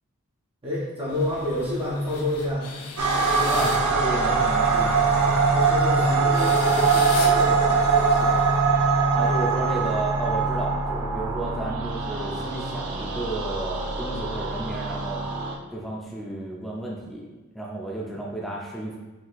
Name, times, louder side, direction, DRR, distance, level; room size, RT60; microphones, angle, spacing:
voice 1, 0.6-2.7 5.5-8.4, left 1 dB, 25° right, -7 dB, 0.8 m, -29 dB
sound 1, 1.1-9.1, left 4 dB, 90° left, 0.6 m, -39 dB
sound 2, 3.0-15.5, right 4 dB, 75° right, 0.6 m, -22 dB
voice 2, 3.3-5.0 9.1-15.2 15.7-17.3 17.5-19.0, right 1 dB, ahead, -4 dB, 0.5 m, -32 dB
5.9 x 2.8 x 2.4 m, 1.2 s
head